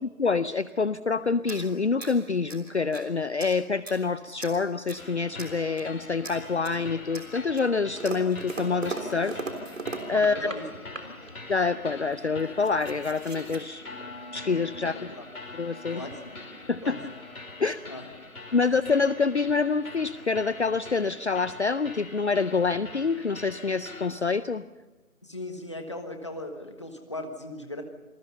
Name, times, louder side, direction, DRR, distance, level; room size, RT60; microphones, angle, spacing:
voice 1, 0.2-9.7 10.1-10.5 11.5-13.9 14.3-14.9 15.6-16.0 16.7-17.0 17.6-17.8 18.5-24.6, left 4 dB, 55° left, 15 dB, 0.6 m, -26 dB
sound 1, 1.4-3.1 3.4-4.0 4.4-5.1 5.4-5.9 6.2-6.8 7.1-10.6 10.9-11.4 12.1-12.2 12.4-13.6, right 3 dB, 60° right, 3.7 m, -39 dB
sound 2, 5.0-24.1, left 2 dB, 90° left, 5.4 m, -44 dB
voice 2, 10.1-10.6 11.0-11.1 14.8-15.3 15.9-16.4 16.8-17.2 17.8-18.1 25.2-27.8, left 1 dB, 20° left, 5 dB, 1.4 m, -38 dB
27.0 x 19.0 x 5.6 m, 1.1 s
figure-of-eight pair, 175°, 43 cm